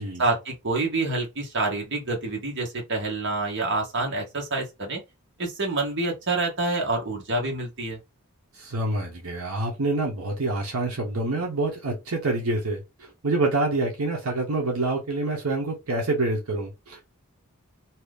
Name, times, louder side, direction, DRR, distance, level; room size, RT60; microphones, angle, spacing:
voice 1, 0.2-5.0 5.4-8.0, right 2 dB, 55° right, 1.1 m, -27 dB
voice 2, 8.5-17.1, right 2 dB, 75° right, 0.8 m, -27 dB
2.8 x 2.4 x 3.4 m
head